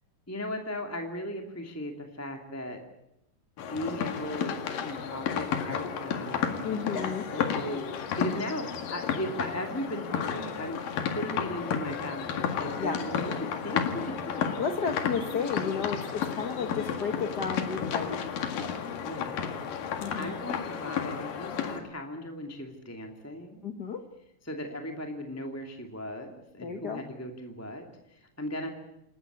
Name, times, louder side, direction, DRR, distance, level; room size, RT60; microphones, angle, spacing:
voice 1, 0.3-2.8 3.7-10.8 11.1-14.4 19.0-19.4 20.2-23.6 24.4-28.7, equal, 5° left, 3 dB, 2.0 m, -37 dB
sound 1, 3.6-21.8, left 7 dB, 90° left, 3.7 m, -32 dB
voice 2, 6.6-7.2 12.8-13.0 14.6-18.2 20.0-20.3 23.6-24.0 26.6-27.0, left 6 dB, 50° left, 6 dB, 1.2 m, -32 dB
28.5 x 13.5 x 9.9 m, 0.82 s
omnidirectional pair, 3.8 m